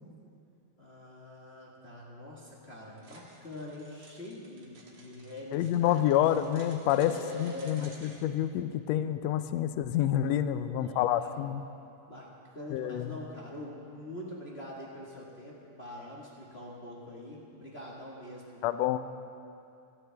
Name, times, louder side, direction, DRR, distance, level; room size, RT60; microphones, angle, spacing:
voice 1, 0.8-6.1 6.8-7.8 10.4-11.3 12.1-18.6, left 1 dB, 30° left, -6 dB, 1.2 m, -44 dB
sound 1, 3.0-8.3, right 2 dB, 45° right, 1.8 m, -54 dB
voice 2, 5.5-11.6 12.7-13.2 18.6-19.0, left 11 dB, 85° left, 11 dB, 1.5 m, -28 dB
18.0 x 14.0 x 3.4 m, 2.6 s
omnidirectional pair, 3.6 m